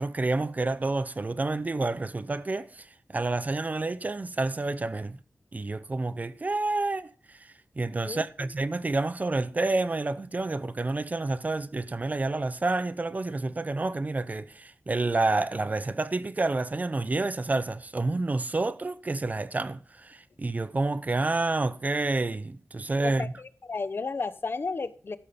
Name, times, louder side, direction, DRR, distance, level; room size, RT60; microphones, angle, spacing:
voice 1, 0.0-5.2 5.5-23.3, right 2 dB, 35° right, 0.5 m, -29 dB
voice 2, 8.1-8.5 23.0-25.2, left 4 dB, 55° left, 0.8 m, -33 dB
13.0 x 7.3 x 5.1 m
wide cardioid pair, 105°, 5 cm